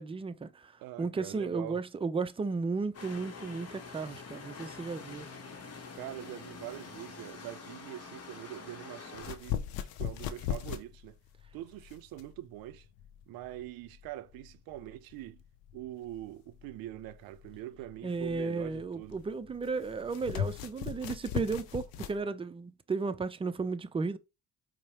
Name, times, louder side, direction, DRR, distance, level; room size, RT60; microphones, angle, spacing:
voice 1, 0.0-0.7 1.0-5.3 18.0-24.2, right 4 dB, 15° right, 0.4 m, -34 dB
voice 2, 0.8-1.8 5.9-9.7 10.0-11.2 11.5-12.9 13.3-15.4 15.7-19.2, right 14 dB, 75° right, 0.5 m, -44 dB
sound 1, 2.9-9.4, left 4 dB, 45° left, 0.9 m, -46 dB
sound 2, 9.2-22.2, left 9 dB, 80° left, 0.5 m, -39 dB
4.5 x 2.1 x 2.8 m
supercardioid pair, 65°, 35 cm